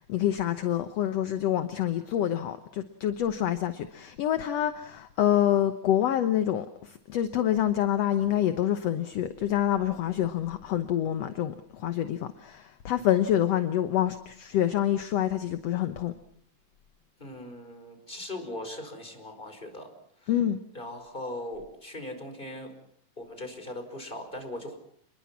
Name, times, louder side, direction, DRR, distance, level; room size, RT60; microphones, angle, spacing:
voice 1, 0.0-16.1 20.3-20.6, left 11 dB, 65° left, 1.8 m, -27 dB
voice 2, 17.2-19.9 20.2-20.3 20.7-22.7 23.2-24.8, left 1 dB, 15° left, 5.2 m, -39 dB
29.0 x 22.0 x 6.0 m
omnidirectional pair, 3.9 m